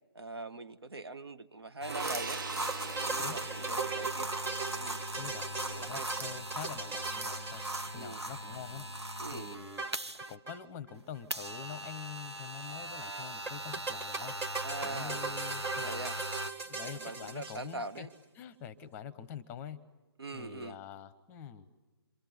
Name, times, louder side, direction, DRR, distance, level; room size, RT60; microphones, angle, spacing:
voice 1, 0.1-2.4 3.0-4.3 4.8-5.0 5.6-6.1 7.9-8.2 9.2-9.6 14.6-15.2 15.8-16.2 16.8-18.1 20.2-20.8, right 2 dB, 70° right, 11 dB, 1.2 m, -42 dB
sound 1, 1.8-10.3 11.3-16.5, right 1 dB, 90° right, 1.0 m, -39 dB
Gong, 1.9-8.5 8.8-9.0, right 5 dB, 50° right, 0.8 m, -45 dB
sound 2, 2.7-8.5 9.8-10.6 10.9-11.0 11.1-11.2 13.5-18.0, right 4 dB, 15° right, 1.1 m, -39 dB
voice 2, 5.2-8.9 9.3-9.8 10.3-14.3 14.8-16.1 16.6-18.1 18.3-19.8 20.3-21.7, left 8 dB, 15° left, 15 dB, 0.8 m, -45 dB
27.5 x 25.5 x 8.1 m, 1.2 s
figure-of-eight pair, 140°, 14 cm